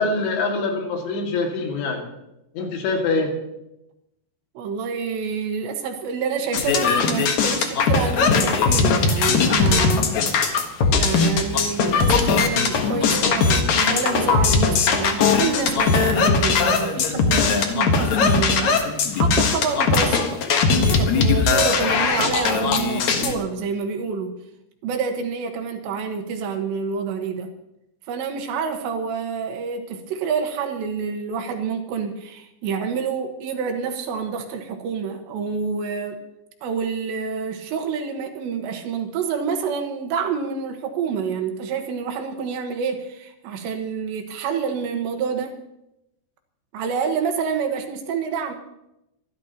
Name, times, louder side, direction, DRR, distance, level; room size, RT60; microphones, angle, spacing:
voice 1, 0.0-2.0 2.5-3.3, left 3 dB, 80° left, 1 dB, 4.6 m, -24 dB
voice 2, 4.6-10.1 10.5-18.8 19.1-20.4 20.7-24.4 24.8-27.5 28.1-36.2 36.6-45.6 46.7-48.5, right 6 dB, 75° right, 5 dB, 3.6 m, -27 dB
sound 1, 6.5-23.3, left 5 dB, 60° left, 2.0 m, -19 dB
25.5 x 12.5 x 3.0 m, 0.87 s
omnidirectional pair, 5.1 m